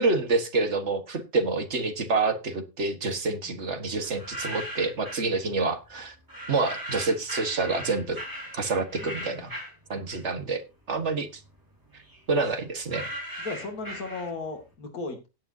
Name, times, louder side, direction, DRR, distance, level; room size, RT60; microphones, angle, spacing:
voice 1, 0.0-6.2 6.5-8.2 8.5-9.5 9.9-10.6 10.9-11.4 12.3-13.1, right 3 dB, 50° right, 1.8 m, -27 dB
voice 2, 3.3-3.6 9.0-9.4 13.4-15.3, left 3 dB, 70° left, 2.9 m, -36 dB
sound 1, 4.0-5.3 6.3-10.5 10.9-14.6, equal, 10° right, 4.4 m, -39 dB
17.0 x 9.1 x 2.8 m
omnidirectional pair, 1.6 m